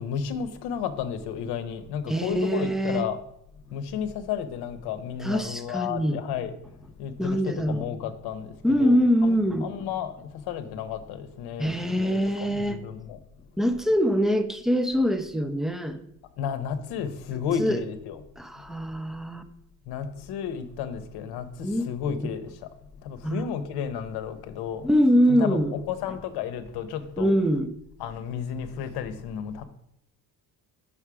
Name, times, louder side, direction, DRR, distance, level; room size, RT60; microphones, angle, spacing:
voice 1, 0.0-3.2 3.7-6.5 7.0-13.2 16.4-18.2 19.9-22.5 23.0-24.9 25.3-27.3 28.0-29.6, left 8 dB, 85° left, 0.8 m, -32 dB
voice 2, 2.1-3.1 5.2-6.2 7.2-7.9 8.6-9.7 11.6-12.8 13.6-16.0 17.6-17.8 18.4-19.4 21.6-21.9 22.2-22.3 23.2-23.5 24.8-25.7 27.2-27.7, equal, ahead, 0.5 m, -24 dB
5.7 x 5.6 x 4.8 m
cardioid pair, 105°, 38 cm